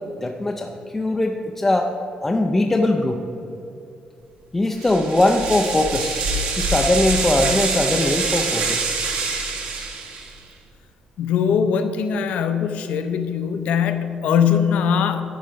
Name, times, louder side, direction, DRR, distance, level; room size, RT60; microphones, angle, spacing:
voice 1, 0.2-1.9 2.2-3.2 4.5-6.3 6.6-8.9, left 2 dB, 10° left, 3 dB, 0.4 m, -21 dB
sound 1, 4.8-10.4, right 3 dB, 65° right, 1.3 m, -25 dB
voice 2, 11.2-15.2, left 7 dB, 70° left, 9 dB, 0.6 m, -21 dB
11.5 x 4.7 x 5.1 m, 2.8 s
cardioid pair, 180°, 2 cm